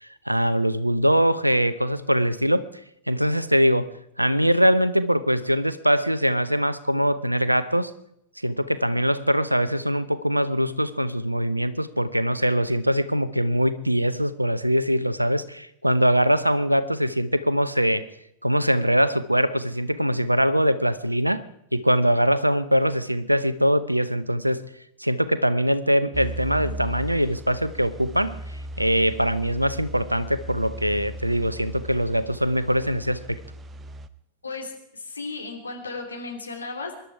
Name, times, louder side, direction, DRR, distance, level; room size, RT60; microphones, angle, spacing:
voice 1, 0.0-2.7 3.1-7.9 8.4-18.0 18.4-21.4 21.7-24.6 25.0-28.4 28.8-33.4, equal, 90° right, 15 dB, 0.8 m, -22 dB
sound 1, 26.1-34.1, right 1 dB, 20° right, 0.8 m, -37 dB
voice 2, 34.4-37.0, left 3 dB, 80° left, 2 dB, 3.0 m, -35 dB
25.0 x 11.5 x 4.8 m, 0.80 s
figure-of-eight pair, 90°, 0 cm